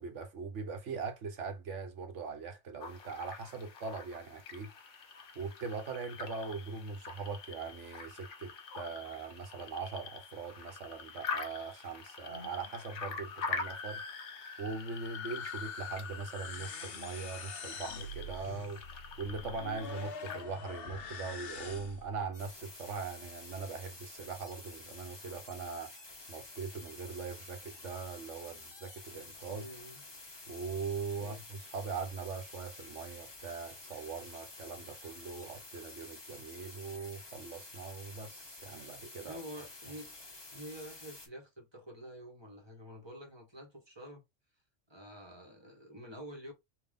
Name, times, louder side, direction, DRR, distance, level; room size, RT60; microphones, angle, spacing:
voice 1, 0.0-4.7 5.3-14.1 14.6-18.8 19.2-26.0 26.3-29.6 30.5-39.4, right 5 dB, 75° right, 1.3 m, -41 dB
sound 1, 2.8-20.4, left 5 dB, 75° left, 1.2 m, -45 dB
sound 2, 12.1-22.1, left 5 dB, 55° left, 0.9 m, -45 dB
sound 3, 22.3-41.3, left 2 dB, 25° left, 0.9 m, -50 dB
voice 2, 29.5-30.0 31.2-31.4 39.2-40.1 40.5-44.2 44.9-46.5, equal, 20° right, 1.2 m, -48 dB
3.7 x 2.6 x 3.6 m
omnidirectional pair, 1.2 m